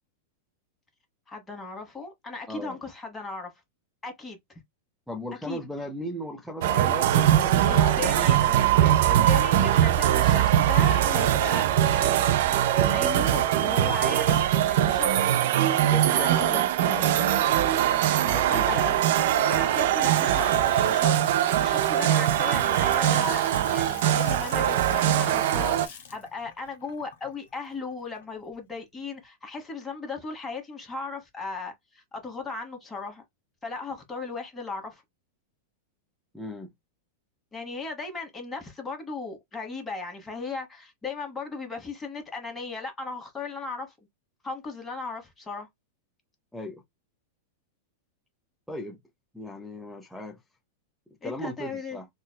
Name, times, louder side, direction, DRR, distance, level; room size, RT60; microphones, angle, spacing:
voice 1, 1.3-3.5 4.0-4.6 5.4-5.6 7.6-8.5 9.0-12.3 12.9-15.4 16.1-16.5 18.5-33.2 33.6-35.0 37.5-43.9 44.4-45.7 51.2-52.0, left 4 dB, 15° left, 1.2 m, -37 dB
voice 2, 5.1-9.0 15.9-17.4 18.2-18.8 36.3-36.7 46.5-46.8 48.7-49.0 49.3-50.4 51.2-52.1, left 1 dB, ahead, 0.7 m, -37 dB
sound 1, 6.6-25.9, right 11 dB, 60° right, 0.4 m, -22 dB
Water tap faucet / Sink (filling or washing) / Splash splatter, 19.9-28.5, left 7 dB, 65° left, 0.9 m, -44 dB
3.9 x 2.2 x 2.2 m
hypercardioid pair, 100°, 0 cm